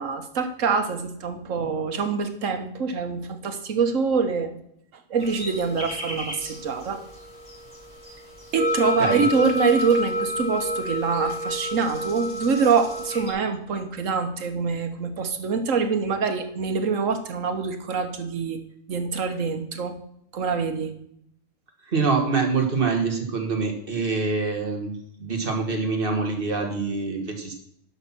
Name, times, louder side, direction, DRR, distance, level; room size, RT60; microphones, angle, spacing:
voice 1, 0.0-4.5 4.9-7.1 8.5-18.6 18.9-20.0 20.3-20.9, right 5 dB, 85° right, 7 dB, 1.5 m, -25 dB
sound 1, 5.2-13.3, equal, 15° right, 4.8 m, -30 dB
voice 2, 21.9-27.5, right 4 dB, 45° right, 3 dB, 1.9 m, -25 dB
11.0 x 5.9 x 6.0 m, 0.73 s
omnidirectional pair, 1.3 m